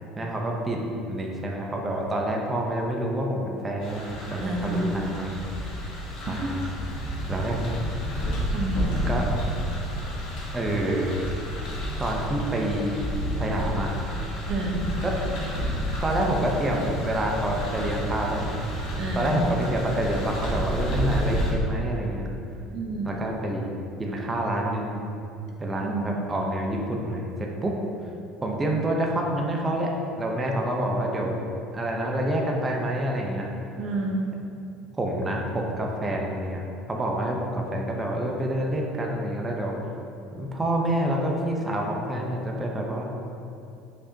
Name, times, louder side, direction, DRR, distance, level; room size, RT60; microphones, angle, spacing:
voice 1, 0.2-5.4 6.2-6.7 7.3-7.6 9.1-9.3 10.5-11.1 12.0-13.1 13.4-13.9 15.0-15.2 15.8-18.5 19.1-22.2 23.0-23.7 24.0-25.0 25.6-27.8 28.4-29.9 30.2-31.3 31.7-33.5 35.0-36.6 36.9-39.8 40.3-43.1, right 1 dB, 20° right, -1 dB, 0.9 m, -27 dB
sound 1, 3.8-21.5, equal, 70° left, 1.4 m, -30 dB
voice 2, 4.4-4.9 6.3-6.6 8.5-8.9 10.9-11.0 14.5-14.9 19.0-19.4 22.7-23.2 25.8-26.2 33.8-34.3, right 2 dB, 55° right, 0 dB, 1.1 m, -29 dB
6.6 x 5.0 x 2.9 m, 2.7 s
supercardioid pair, 90°, 0 cm